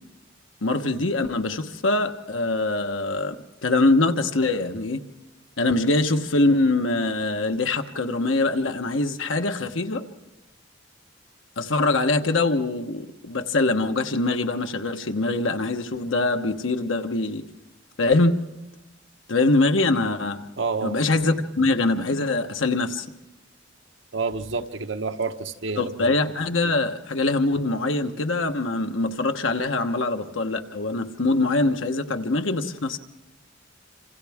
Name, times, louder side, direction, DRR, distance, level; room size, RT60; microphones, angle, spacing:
voice 1, 0.6-3.4 3.6-5.0 5.6-10.0 11.6-17.4 18.0-18.4 19.3-20.4 20.8-23.0 25.8-33.0, left 2 dB, 85° left, 6 dB, 1.2 m, -23 dB
voice 2, 20.6-21.0 24.1-26.2, right 4 dB, 75° right, 7 dB, 1.0 m, -29 dB
27.5 x 27.0 x 3.6 m, 1.0 s
head